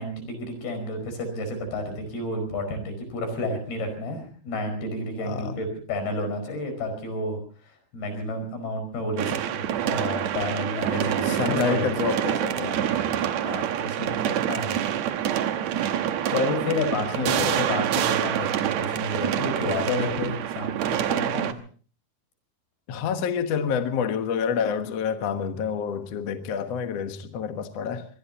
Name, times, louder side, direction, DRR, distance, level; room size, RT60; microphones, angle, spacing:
voice 1, 0.0-11.9 12.8-14.8 15.5-15.6 16.3-21.6, left 1 dB, 75° left, 7.0 m, -31 dB
voice 2, 5.2-5.6 11.3-13.0 17.2-17.6 22.9-28.1, left 7 dB, 60° left, 1.9 m, -28 dB
C.fieldechoes - New Year's Hell, 9.2-21.5, right 10 dB, 70° right, 1.8 m, -26 dB
23.5 x 21.0 x 2.9 m
omnidirectional pair, 4.4 m